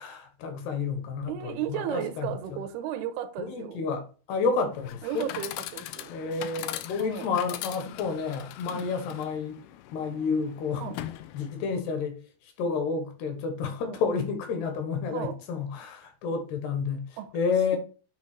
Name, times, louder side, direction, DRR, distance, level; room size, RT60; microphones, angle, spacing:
voice 1, 0.0-2.6 3.4-5.3 6.1-9.6 9.9-11.1 11.3-17.8, left 5 dB, 70° left, 3.3 m, -30 dB
voice 2, 1.2-3.8 5.0-6.1 7.0-7.3 8.7-8.9 10.8-11.0 13.8-14.0 15.1-15.4 17.2-17.3, right 10 dB, 80° right, 2.4 m, -34 dB
Chatter / Coin (dropping), 4.7-11.8, left 13 dB, 90° left, 2.2 m, -40 dB
8.7 x 3.5 x 6.1 m
omnidirectional pair, 5.2 m